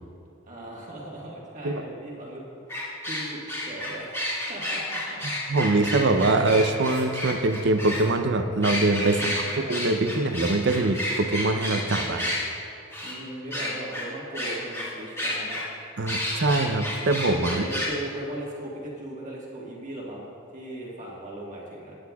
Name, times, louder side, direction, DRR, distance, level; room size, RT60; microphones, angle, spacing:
voice 1, 0.5-2.4 2.7-4.2 4.5-5.2 9.2-9.7 13.0-15.6 17.5-22.0, right 1 dB, 40° right, -4 dB, 1.6 m, -38 dB
sound 1, 2.7-8.0 8.6-12.4 12.9-13.1 13.5-14.0 14.3-14.9 15.2-15.6 16.1-17.9, left 1 dB, 15° left, 2.2 m, -30 dB
voice 2, 5.5-12.3 16.0-17.6, right 2 dB, 60° right, 7 dB, 0.6 m, -23 dB
16.0 x 9.6 x 2.4 m, 2.8 s
head